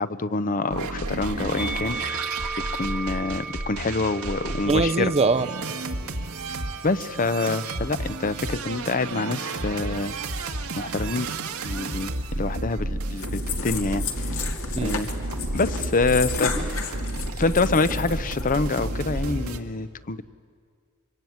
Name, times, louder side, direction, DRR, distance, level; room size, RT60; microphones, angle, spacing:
voice 1, 0.0-2.0 2.7-5.1 6.8-10.1 10.8-11.3 11.6-14.0 14.8-15.1 15.5-17.0 17.4-20.2, left 3 dB, 40° left, 14 dB, 0.7 m, -26 dB
sound 1, 0.7-19.6, right 2 dB, 90° right, 1.8 m, -31 dB
Musical instrument, 1.6-8.0 8.8-9.8, right 3 dB, 10° right, 1.2 m, -37 dB
voice 2, 4.7-5.7 14.8-15.0, right 3 dB, 30° right, 13 dB, 0.6 m, -23 dB
sound 2, 13.2-19.4, left 5 dB, 70° left, 2.4 m, -33 dB
25.0 x 24.0 x 9.4 m, 2.2 s
head